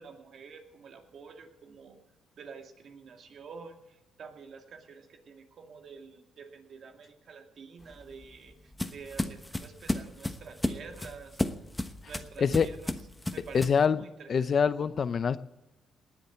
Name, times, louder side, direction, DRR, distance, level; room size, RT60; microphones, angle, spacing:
voice 1, 0.0-2.0 2.4-11.4 12.0-12.9 13.2-14.5, right 5 dB, 60° right, 4 dB, 2.2 m, -48 dB
sound 1, 7.8-13.9, left 1 dB, 10° left, 1.1 m, -34 dB
voice 2, 13.5-14.0 14.3-15.4, left 6 dB, 50° left, 14 dB, 0.7 m, -25 dB
19.0 x 7.7 x 8.2 m, 0.98 s
cardioid pair, 90°, 0 cm